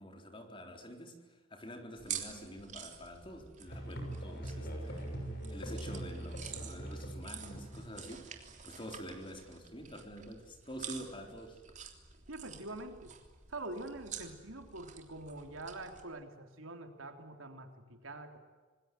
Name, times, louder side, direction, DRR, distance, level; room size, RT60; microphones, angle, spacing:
voice 1, 0.0-5.1 5.5-11.6, equal, 25° left, 4 dB, 3.8 m, -47 dB
sound 1, 2.0-16.0, right 8 dB, 40° right, 3.3 m, -49 dB
Musical instrument, 3.7-8.5, right 1 dB, 50° left, 6.7 m, -42 dB
voice 2, 12.3-13.1 13.5-18.4, right 2 dB, 90° right, 6 dB, 3.5 m, -45 dB
27.0 x 20.5 x 9.4 m, 1.4 s
head